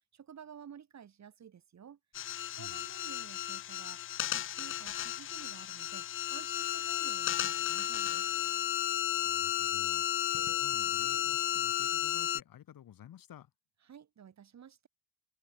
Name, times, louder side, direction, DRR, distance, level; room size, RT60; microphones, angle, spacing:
voice 1, 0.0-2.0 2.5-8.3 13.8-14.9, right 8 dB, 40° right, 1.6 m, -53 dB
sound 1, 2.1-12.4, left 12 dB, 30° left, 0.4 m, -33 dB
voice 2, 8.9-13.5, left 11 dB, 50° left, 2.0 m, -54 dB
hypercardioid pair, 65°, 44 cm